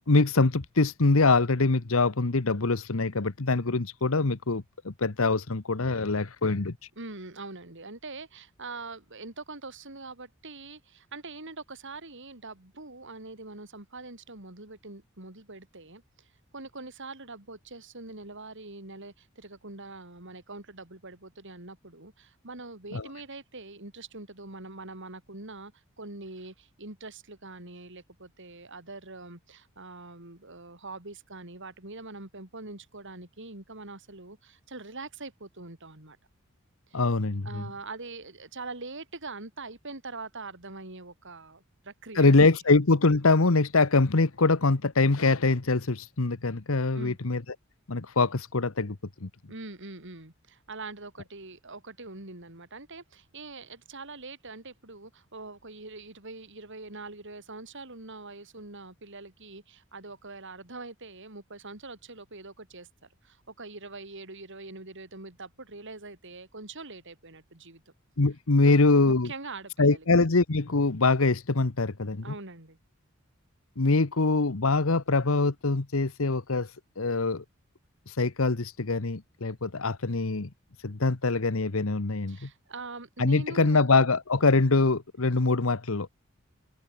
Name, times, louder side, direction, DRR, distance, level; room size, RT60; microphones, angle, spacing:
voice 1, 0.1-6.7 22.9-23.1 36.9-37.6 42.1-47.4 47.9-49.3 68.2-69.3 69.8-72.2 73.8-76.7 77.0-77.4 78.1-80.5 80.8-82.5 83.2-86.1, left 3 dB, 75° left, 1.2 m, -24 dB
voice 2, 7.0-36.2 36.9-37.0 37.4-42.4 46.9-47.2 49.5-67.8 68.6-70.1 72.2-72.8 82.3-83.9, right 3 dB, 60° right, 4.8 m, -43 dB
head